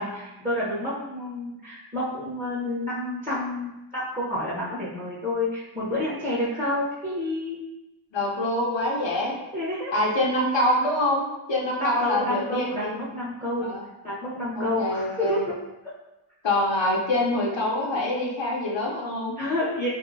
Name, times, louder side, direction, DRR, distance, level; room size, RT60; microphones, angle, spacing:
voice 1, 0.0-7.6 9.5-9.9 11.8-13.7 14.0-15.6 15.8-15.9 19.4-19.9, left 1 dB, 15° right, -9 dB, 0.9 m, -29 dB
voice 2, 8.1-9.4 9.9-13.0 13.6-13.8 14.6-15.4 16.4-19.3, left 1 dB, 65° left, -3 dB, 0.7 m, -25 dB
2.7 x 2.6 x 2.6 m, 0.97 s
wide cardioid pair, 50°, 49 cm